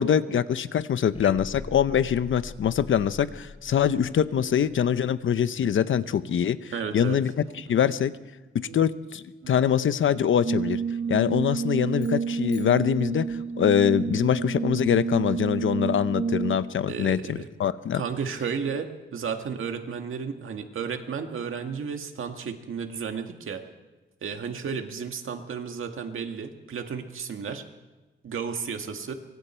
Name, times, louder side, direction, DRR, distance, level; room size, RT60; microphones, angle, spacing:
voice 1, 0.0-7.3 7.7-8.1 8.5-10.8 11.1-18.0, left 8 dB, 75° left, 13 dB, 0.8 m, -24 dB
sound 1, 1.1-5.3, left 4 dB, 25° left, 0.8 m, -42 dB
voice 2, 5.5-5.9 6.2-6.4 6.7-7.2 8.7-8.8 9.4-9.7 10.2-10.3 11.0-11.2 11.7-11.9 12.3-12.7 16.9-17.5 17.9-23.6 24.2-27.6 28.2-29.1, right 6 dB, 80° right, 5 dB, 1.9 m, -33 dB
Brass instrument, 10.4-16.8, right 5 dB, 50° right, 1.3 m, -29 dB
sound 2, 11.9-14.2, left 3 dB, 55° left, 5.4 m, -55 dB
25.0 x 24.0 x 4.5 m, 1.2 s
wide cardioid pair, 150°, 21 cm